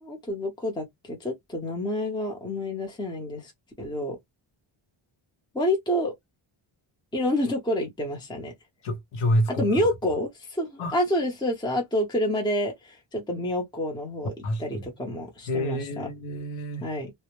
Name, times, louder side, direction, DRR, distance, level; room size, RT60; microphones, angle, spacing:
voice 1, 0.0-3.5 3.8-4.2 5.5-6.1 7.1-8.5 9.5-14.3 14.6-16.1 16.8-17.1, left 1 dB, 10° left, 0.6 m, -28 dB
voice 2, 8.8-9.9 10.8-10.9 14.4-14.9 15.5-16.9, equal, 85° left, 0.7 m, -28 dB
2.1 x 2.0 x 2.9 m
wide cardioid pair, 140°, 48 cm